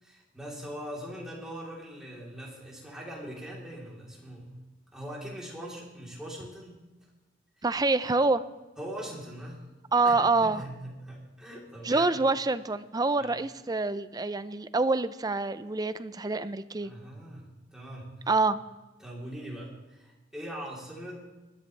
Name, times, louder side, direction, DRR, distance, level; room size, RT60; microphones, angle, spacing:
voice 1, 0.0-4.5 4.9-6.8 7.6-7.7 8.8-9.6 10.0-12.2 13.2-13.3 16.8-18.3 19.0-21.3, equal, 5° right, -4 dB, 3.6 m, -41 dB
voice 2, 7.6-8.4 9.9-10.6 11.8-16.9 18.3-18.6, right 3 dB, 20° right, 13 dB, 0.5 m, -26 dB
20.5 x 13.5 x 3.4 m, 1.1 s
head